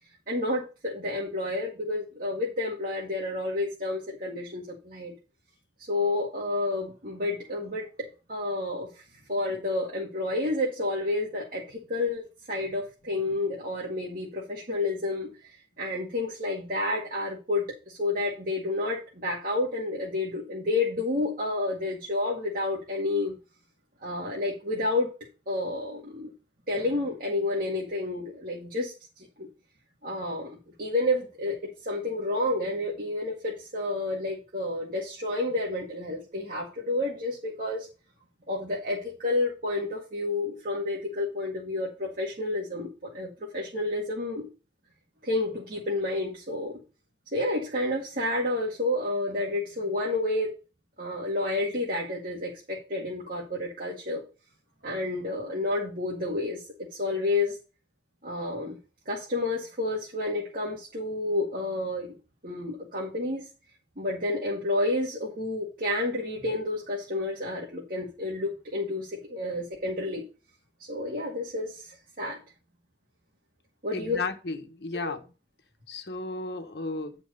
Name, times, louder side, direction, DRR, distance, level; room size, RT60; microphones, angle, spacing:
voice 1, 0.3-5.1 5.9-9.0 9.3-23.3 24.0-25.1 25.5-26.3 26.7-29.5 30.0-37.9 38.5-44.5 45.2-46.8 47.3-50.5 51.0-54.2 54.8-56.6 56.9-57.6 58.2-58.8 59.1-62.1 62.4-63.5 64.0-70.3 70.8-72.4 73.8-74.2 75.0-75.1, left 2 dB, 50° right, -2 dB, 1.9 m, -30 dB
voice 2, 73.9-75.2 75.9-77.2, left 3 dB, 65° left, 6 dB, 1.3 m, -34 dB
10.0 x 4.6 x 5.3 m, 0.32 s
head